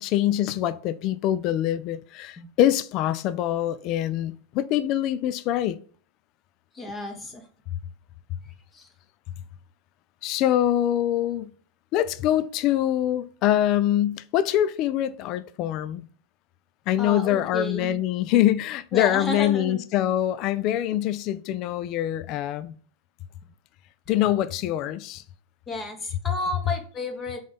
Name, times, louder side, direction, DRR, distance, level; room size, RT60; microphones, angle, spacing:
voice 1, 0.0-5.8 10.2-11.5 11.9-16.0 16.9-22.7 24.1-25.2 26.3-26.4, left 12 dB, 40° left, 0.4 m, -24 dB
voice 2, 6.7-7.4 8.7-8.9 17.0-18.0 18.9-19.8 25.7-27.4, left 2 dB, 20° left, 1.4 m, -32 dB
5.0 x 3.9 x 5.1 m
figure-of-eight pair, 90°, 0 cm